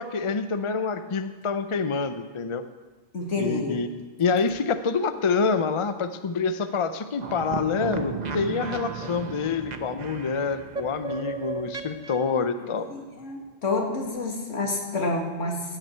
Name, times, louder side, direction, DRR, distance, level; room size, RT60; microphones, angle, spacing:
voice 1, 0.0-2.6 3.4-3.9 4.2-12.9, left 5 dB, 40° left, 10 dB, 0.4 m, -27 dB
voice 2, 3.1-3.8 12.9-15.6, left 2 dB, 70° left, 0 dB, 2.3 m, -28 dB
sound 1, 7.2-12.3, right 4 dB, 40° right, 0.8 m, -34 dB
16.0 x 9.4 x 4.5 m, 1.3 s
omnidirectional pair, 1.3 m